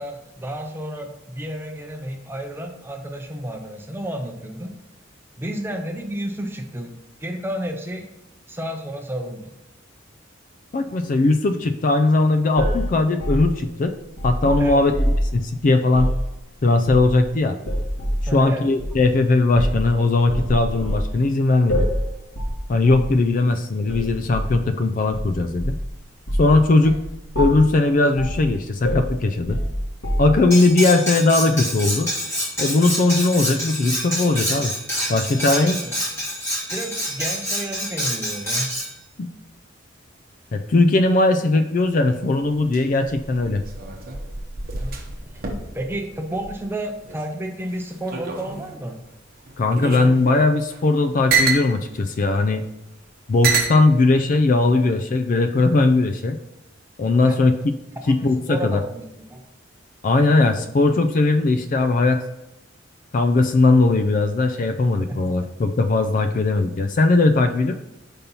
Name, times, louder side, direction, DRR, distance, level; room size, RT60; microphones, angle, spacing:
voice 1, 0.0-4.7 5.4-8.1 8.5-9.6 14.6-14.9 18.3-18.7 35.4-36.0 36.7-38.7 44.7-45.4 45.7-49.0 57.2-57.4 58.0-59.4 64.9-65.3, right 1 dB, 10° right, 3 dB, 0.7 m, -31 dB
voice 2, 10.7-13.9 14.2-14.9 15.3-16.1 16.6-17.6 18.3-21.9 22.7-25.8 26.4-27.0 27.4-29.6 30.2-32.1 32.6-34.7 35.1-35.8 39.2-39.3 40.5-43.6 49.6-52.6 53.3-56.4 57.0-57.7 58.1-58.8 60.0-62.2 63.1-67.8, left 2 dB, 40° left, 8 dB, 0.4 m, -19 dB
sound 1, 12.6-15.3 15.9-16.2 16.9-17.3 17.6-18.3 18.8-19.0 19.5-19.9 20.3-21.1 21.7-22.0 22.3-22.6 22.9-23.1 23.9-24.5 25.1-25.9 26.3-26.5 26.8-27.0 27.3-27.7 28.2-28.4 28.8-30.5, equal, 80° left, 2.0 m, -25 dB
Cutlery silverware, 30.5-38.9, equal, 15° left, 2.4 m, -27 dB
sound 2, 42.4-47.2 47.6-48.8 49.5-51.7 52.6-52.7 53.4-53.8 54.6-55.0, right 5 dB, 50° right, 0.9 m, -27 dB
5.3 x 4.3 x 5.3 m, 0.89 s
head